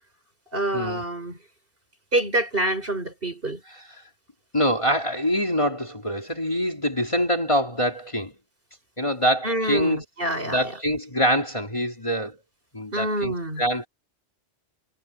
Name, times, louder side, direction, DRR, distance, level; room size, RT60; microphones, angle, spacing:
voice 1, 0.5-1.4 2.1-3.6 9.4-10.7 12.9-13.6, right 1 dB, 50° right, 5.8 m, -26 dB
voice 2, 4.5-8.3 9.0-10.0 10.4-12.4 12.7-13.9, equal, 25° left, 3.1 m, -25 dB
omnidirectional pair, 1.2 m